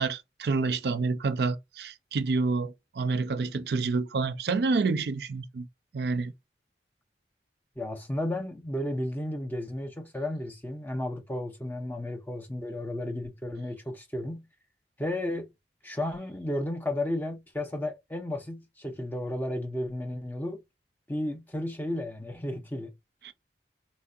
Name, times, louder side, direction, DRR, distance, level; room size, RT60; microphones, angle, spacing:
voice 1, 0.0-5.7 5.9-6.3 23.2-23.3, right 4 dB, 65° right, 0.4 m, -28 dB
voice 2, 7.8-14.5 15.0-15.5 15.8-20.6 21.1-22.9, left 1 dB, 10° left, 0.6 m, -33 dB
4.1 x 2.7 x 2.3 m
head